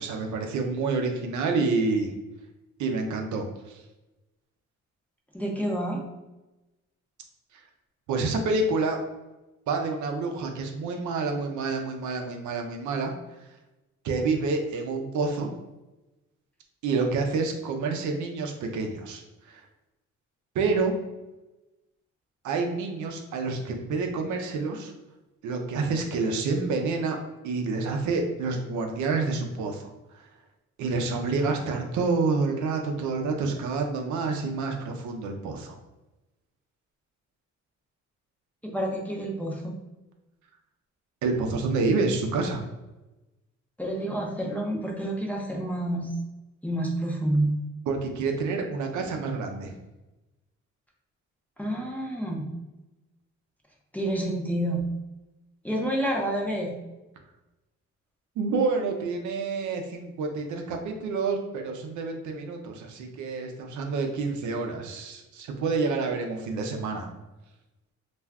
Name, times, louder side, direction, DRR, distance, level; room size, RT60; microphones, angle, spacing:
voice 1, 0.0-2.1 2.8-3.5 8.1-9.0 9.7-13.1 14.0-15.5 16.8-19.2 19.5-19.6 20.5-20.9 22.4-24.9 25.4-27.2 27.4-29.9 30.8-35.8 41.2-42.6 47.9-49.7 58.4-67.1, right 4 dB, 75° right, 4 dB, 0.6 m, -28 dB
voice 2, 5.3-6.0 38.6-39.7 43.8-46.2 46.6-47.6 51.6-52.5 53.9-54.8 55.6-56.7, right 1 dB, 5° left, -2 dB, 0.6 m, -28 dB
2.4 x 2.2 x 3.5 m, 1.0 s
cardioid pair, 90°, 30 cm